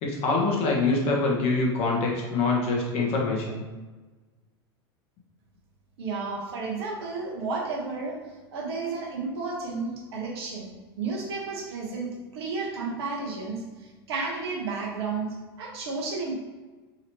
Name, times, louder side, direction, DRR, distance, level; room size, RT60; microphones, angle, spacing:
voice 1, 0.0-3.6, left 3 dB, 45° left, -1 dB, 1.1 m, -25 dB
voice 2, 6.0-8.2 8.5-15.3 15.6-16.4, right 4 dB, 75° right, -1 dB, 1.1 m, -32 dB
3.9 x 2.9 x 3.0 m, 1.3 s
hypercardioid pair, 95°, 14 cm